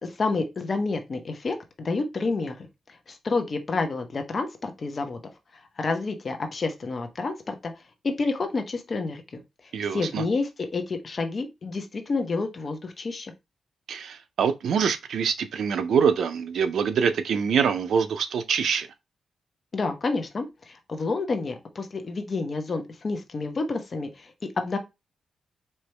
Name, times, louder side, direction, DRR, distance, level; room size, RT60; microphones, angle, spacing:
voice 1, 0.0-5.2 5.5-7.7 8.0-9.4 9.9-13.3 19.7-24.8, left 3 dB, 40° left, 0.8 m, -29 dB
voice 2, 9.7-10.2 13.9-18.9, right 6 dB, 80° right, 0.5 m, -24 dB
4.4 x 2.9 x 3.2 m
wide cardioid pair, 140°, 0 cm